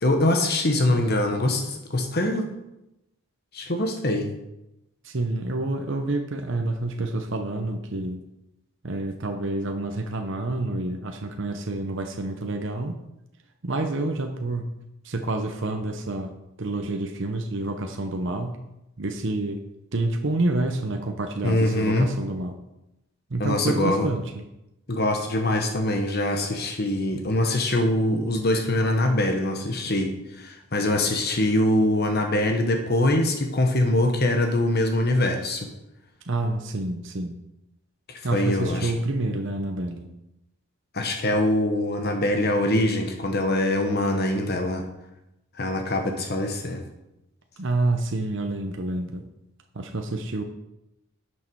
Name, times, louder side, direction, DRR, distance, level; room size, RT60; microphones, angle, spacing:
voice 1, 0.0-2.5 3.5-4.4 21.4-22.1 23.4-24.1 24.9-35.7 38.1-38.9 40.9-44.8 45.5-46.8, left 1 dB, 45° left, 4 dB, 1.1 m, -23 dB
voice 2, 5.0-8.2 8.8-12.9 13.6-14.7 15.0-16.3 16.6-18.6 19.0-19.6 19.9-22.6 23.3-24.4 36.3-37.4 38.2-40.1 47.6-49.2 49.7-50.4, right 2 dB, 55° right, 4 dB, 0.8 m, -28 dB
11.5 x 6.4 x 4.7 m, 0.90 s
head